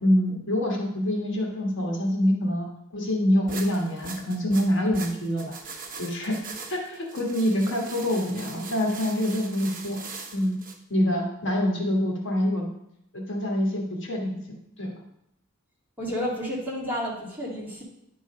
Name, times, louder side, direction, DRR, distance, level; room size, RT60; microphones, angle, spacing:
voice 1, 0.0-5.6 6.0-6.4 6.7-10.0 10.3-10.6 10.9-12.6 13.1-14.3 14.8-14.9, equal, 60° left, 0 dB, 1.5 m, -25 dB
sound 1, 3.5-10.8, right 4 dB, 40° right, 1.0 m, -41 dB
voice 2, 16.0-17.8, equal, 10° right, -5 dB, 2.1 m, -31 dB
10.0 x 3.9 x 5.0 m, 0.78 s
head